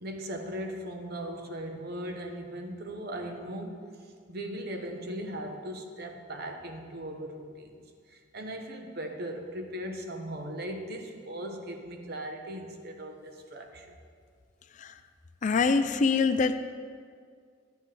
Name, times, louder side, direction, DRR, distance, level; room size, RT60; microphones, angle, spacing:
voice 1, 0.0-3.8 4.3-7.7 8.1-13.9, right 1 dB, 55° right, 4 dB, 0.9 m, -38 dB
voice 2, 15.4-16.6, left 4 dB, 40° left, 10 dB, 0.4 m, -24 dB
9.8 x 8.1 x 3.3 m, 2.1 s
head